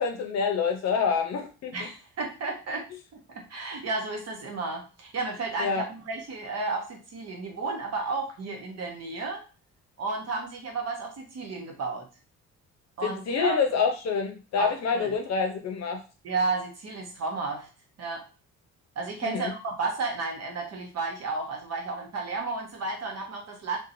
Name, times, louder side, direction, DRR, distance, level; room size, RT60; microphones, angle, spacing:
voice 1, 0.0-1.9 5.6-5.8 13.0-16.0 19.2-19.5, left 6 dB, 60° left, 4 dB, 0.7 m, -27 dB
voice 2, 1.7-2.9 3.3-9.4 10.0-12.1 13.0-13.6 14.6-15.1 16.2-17.7 18.0-18.2 19.0-23.8, right 3 dB, 55° right, 1 dB, 1.0 m, -32 dB
2.8 x 2.2 x 2.6 m, 0.33 s
cardioid pair, 90°, 30 cm